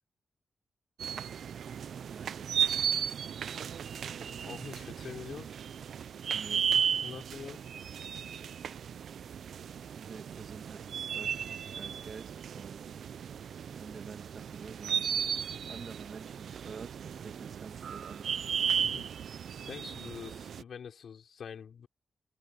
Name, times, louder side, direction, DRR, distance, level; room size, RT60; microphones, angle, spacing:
sound 1, 1.0-20.6, right 8 dB, 90° right, 0.4 m, -35 dB
voice 1, 2.0-2.9 6.3-6.7 10.0-13.0 13.7-15.2 15.7-18.5, right 5 dB, 55° right, 1.9 m, -48 dB
voice 2, 4.0-5.5 7.0-7.6 18.7-19.1 19.7-21.9, left 7 dB, 80° left, 5.2 m, -45 dB
open air
wide cardioid pair, 125°, 0 cm